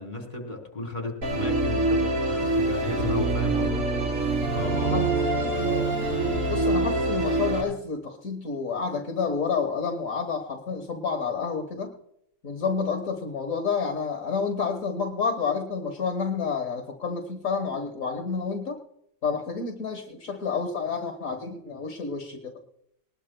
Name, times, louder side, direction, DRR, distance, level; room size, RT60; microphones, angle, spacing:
voice 1, 0.0-3.8 4.1-5.2, left 2 dB, 35° left, 2 dB, 3.7 m, -34 dB
Musical instrument, 1.2-7.6, right 2 dB, 70° right, 4.2 m, -25 dB
voice 2, 5.4-5.9 6.5-11.9 12.4-18.8 19.2-22.6, left 5 dB, 70° left, 4 dB, 1.8 m, -29 dB
21.0 x 20.0 x 2.3 m, 0.74 s
omnidirectional pair, 1.4 m